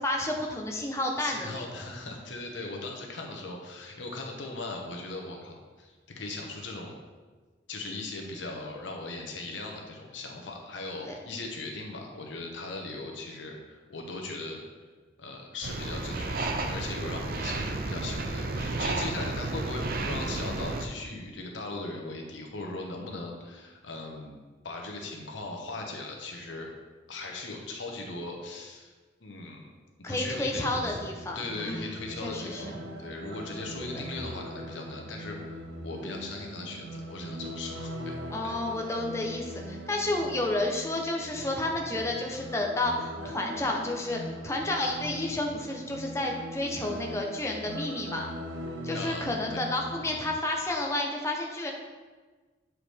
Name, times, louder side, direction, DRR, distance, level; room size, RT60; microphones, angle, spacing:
voice 1, 0.0-1.6 11.0-11.1 30.0-31.9 32.2-32.7 38.3-48.3 48.8-51.7, left 2 dB, 15° left, 0 dB, 0.7 m, -31 dB
voice 2, 1.2-7.0 7.7-14.6 15.2-26.7 27.1-28.9 29.2-29.7 30.1-38.6 48.9-49.6, left 2 dB, 85° left, 1 dB, 1.1 m, -39 dB
sound 1, 15.6-20.8, right 2 dB, 50° right, 0.5 m, -32 dB
sound 2, 30.5-50.3, equal, 85° right, 0.7 m, -41 dB
8.0 x 4.7 x 3.4 m, 1.3 s
head